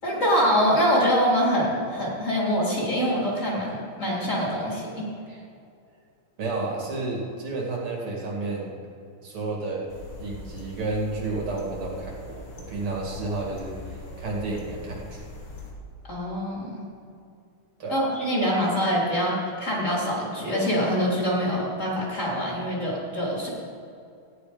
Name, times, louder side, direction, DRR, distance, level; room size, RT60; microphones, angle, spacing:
voice 1, 0.0-5.1 16.1-16.8 17.9-23.5, equal, 35° left, -4 dB, 3.9 m, -24 dB
voice 2, 6.4-8.7 9.2-9.9 10.2-13.8 14.2-15.2 17.8-18.0, right 3 dB, 80° right, -3 dB, 3.3 m, -31 dB
sound 1, 9.9-15.7, left 2 dB, 75° left, 2.6 m, -41 dB
15.0 x 10.0 x 5.1 m, 2.5 s
omnidirectional pair, 2.4 m